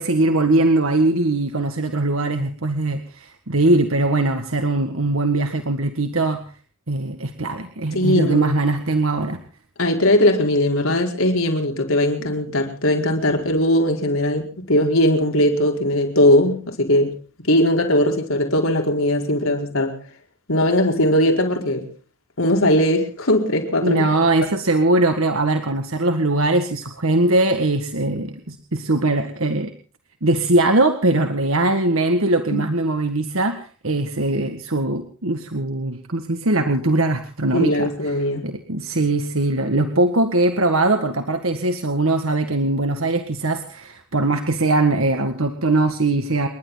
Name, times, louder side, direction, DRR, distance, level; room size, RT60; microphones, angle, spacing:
voice 1, 0.0-6.4 6.9-9.4 23.8-29.7 30.2-38.2 38.4-46.5, right 2 dB, 80° right, 6 dB, 1.8 m, -21 dB
voice 2, 7.9-8.5 9.8-17.1 17.5-20.0 20.5-21.9 22.4-24.0 24.4-24.5 32.5-32.7 37.5-38.5, left 1 dB, 85° left, 2 dB, 4.8 m, -19 dB
30.0 x 12.0 x 4.1 m, 0.40 s
head